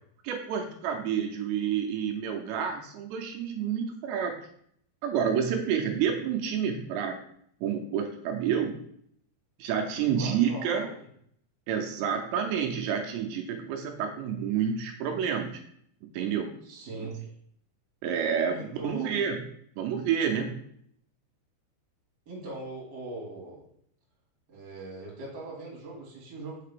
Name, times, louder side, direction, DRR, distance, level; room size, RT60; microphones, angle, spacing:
voice 1, 0.2-4.3 5.0-7.2 7.6-8.8 9.6-10.9 11.7-15.6 16.0-16.6 17.0-17.1 18.0-19.4 19.8-20.6, right 7 dB, 85° right, 3 dB, 2.8 m, -29 dB
voice 2, 10.1-11.0 16.6-17.3 18.5-19.2 22.3-23.6 24.5-26.6, right 2 dB, 35° right, -4 dB, 1.8 m, -40 dB
6.6 x 4.8 x 3.5 m, 0.66 s
omnidirectional pair, 5.1 m